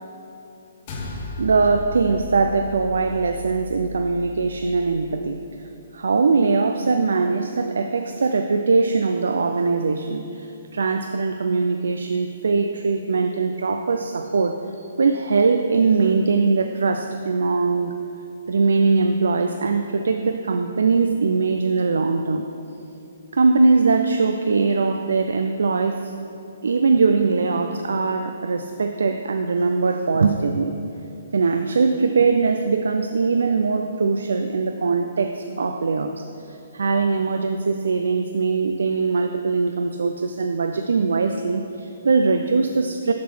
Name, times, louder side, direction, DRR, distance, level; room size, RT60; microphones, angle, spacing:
sound 1, 0.9-5.4, left 3 dB, 30° left, 0.8 m, -36 dB
voice 1, 1.4-5.4 5.9-14.6 15.0-17.9 18.5-22.5 23.3-26.1 26.6-30.8 31.3-43.1, right 4 dB, 90° right, 6 dB, 0.3 m, -21 dB
7.3 x 3.8 x 6.0 m, 2.7 s
hypercardioid pair, 170°, 0 cm